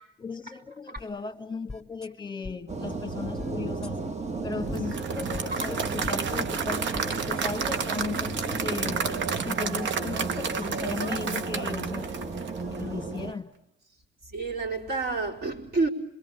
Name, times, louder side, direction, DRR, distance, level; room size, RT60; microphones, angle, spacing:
voice 1, 0.2-4.0 4.4-9.1 9.4-12.2 12.7-13.5, left 4 dB, 25° left, 1.7 m, -36 dB
sound 1, 1.0-1.1 1.7-2.1 2.4-2.5 3.4-3.5 3.8-3.9 4.7-4.8 5.3-5.7 6.0-6.1 6.9-7.1 7.4-8.3, left 3 dB, 5° left, 1.6 m, -42 dB
sound 2, 2.7-13.3, right 3 dB, 35° right, 1.5 m, -34 dB
Applause / Crowd, 4.8-12.9, right 6 dB, 70° right, 1.2 m, -31 dB
voice 2, 14.3-15.9, right 3 dB, 50° right, 4.4 m, -29 dB
27.5 x 22.0 x 9.0 m
cardioid pair, 90°, 20 cm